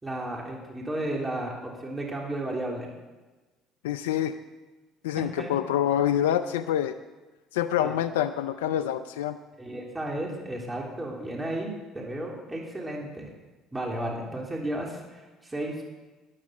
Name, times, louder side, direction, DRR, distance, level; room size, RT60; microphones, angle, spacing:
voice 1, 0.0-2.9 5.2-5.5 7.8-7.9 9.6-13.3 13.7-15.9, right 1 dB, 15° right, -1 dB, 3.3 m, -33 dB
voice 2, 3.8-4.3 5.0-7.0 7.5-9.4, left 10 dB, 90° left, 11 dB, 0.5 m, -26 dB
13.5 x 10.5 x 6.5 m, 1.2 s
hypercardioid pair, 70°, 0 cm